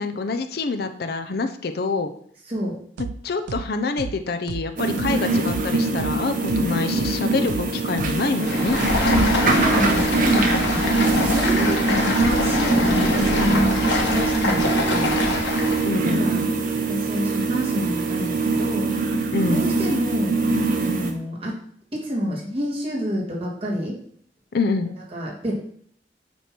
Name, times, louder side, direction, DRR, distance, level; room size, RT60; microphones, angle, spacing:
voice 1, 0.0-2.1 3.0-8.8 13.4-13.7 15.8-16.3 19.3-19.7 24.5-24.9, left 3 dB, 60° left, 7 dB, 0.5 m, -26 dB
voice 2, 2.5-2.8 9.2-16.4 16.9-20.4 20.8-21.6 21.9-24.0 25.0-25.6, equal, 30° right, -3 dB, 1.9 m, -28 dB
sound 1, 3.0-3.1 3.5-3.6 4.0-4.1 4.5-4.6 5.0-5.1 5.5-5.6 6.0-6.1 6.5-6.6 7.0-7.1 7.5-7.6 8.0-8.1, right 6 dB, 70° right, 0.3 m, -31 dB
sound 2, 4.8-21.1, right 3 dB, 50° right, 0.9 m, -23 dB
Stream, 8.3-15.9, left 2 dB, 90° left, 1.5 m, -24 dB
8.3 x 3.0 x 5.8 m, 0.62 s
head